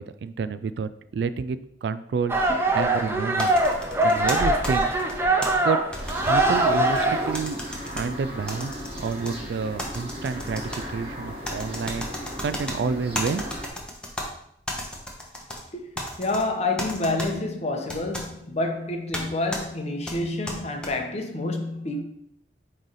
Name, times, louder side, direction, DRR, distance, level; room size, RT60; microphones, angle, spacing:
voice 1, 0.0-2.3 2.7-3.5 4.0-4.9 5.6-5.8 6.3-7.6 7.8-8.7 9.0-10.6 10.9-12.1 12.4-13.4, right 5 dB, 70° right, 0.3 m, -29 dB
sound 1, 2.3-7.3, right 2 dB, 15° right, 0.7 m, -22 dB
sound 2, 3.4-5.5 5.9-7.0 7.3-8.0 8.5-9.3 9.8-10.8 11.4-12.8 13.1-14.3 14.7-15.6 16.0-16.4 16.8-17.3 17.9-18.3 19.1-19.2 19.5-19.6 20.1-20.9, left 1 dB, 5° left, 1.0 m, -33 dB
sound 3, 6.0-13.7, equal, 30° right, 1.6 m, -37 dB
voice 2, 15.7-22.0, left 2 dB, 40° left, 0.9 m, -28 dB
9.1 x 3.3 x 4.0 m
head